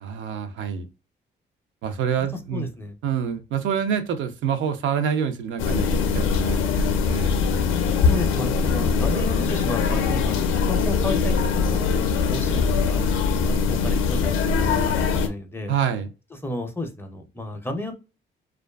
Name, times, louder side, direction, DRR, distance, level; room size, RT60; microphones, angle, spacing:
voice 1, 0.0-0.9 1.8-2.7 3.0-5.9 6.1-7.8 15.7-16.1, right 7 dB, 75° right, 7 dB, 0.4 m, -27 dB
voice 2, 2.2-2.9 8.1-11.8 12.2-13.1 13.5-15.7 16.3-17.9, left 2 dB, 10° left, 5 dB, 0.4 m, -33 dB
sound 1, 5.6-15.3, left 5 dB, 90° left, 0.4 m, -22 dB
2.4 x 2.3 x 2.2 m, 0.30 s
cardioid pair, 90°, 20 cm